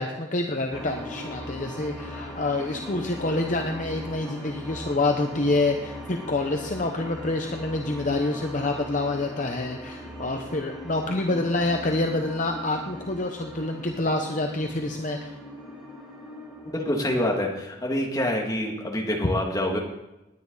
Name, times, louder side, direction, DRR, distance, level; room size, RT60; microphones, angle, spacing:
voice 1, 0.0-15.3 19.2-19.3, left 2 dB, 40° left, 3 dB, 0.9 m, -27 dB
sound 1, 0.7-19.1, left 1 dB, ahead, 2.9 m, -40 dB
voice 2, 16.7-19.8, left 1 dB, 20° left, 0 dB, 2.1 m, -26 dB
19.0 x 9.7 x 4.0 m, 0.97 s
head